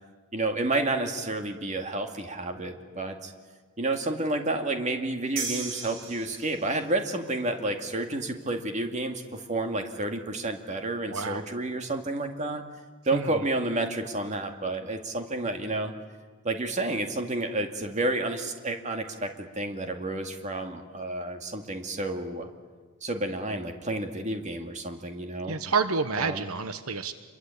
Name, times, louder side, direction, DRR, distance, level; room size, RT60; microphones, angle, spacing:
voice 1, 0.3-3.3 3.8-12.6 13.1-15.9 16.4-22.5 23.0-25.6 26.2-26.4, right 2 dB, 30° right, 5 dB, 2.2 m, -30 dB
sound 1, 5.4-6.9, right 4 dB, 55° right, 5.1 m, -35 dB
voice 2, 11.1-11.4 13.1-13.4 25.5-27.1, right 4 dB, 75° right, 11 dB, 1.2 m, -29 dB
27.5 x 23.0 x 8.6 m, 1.4 s
head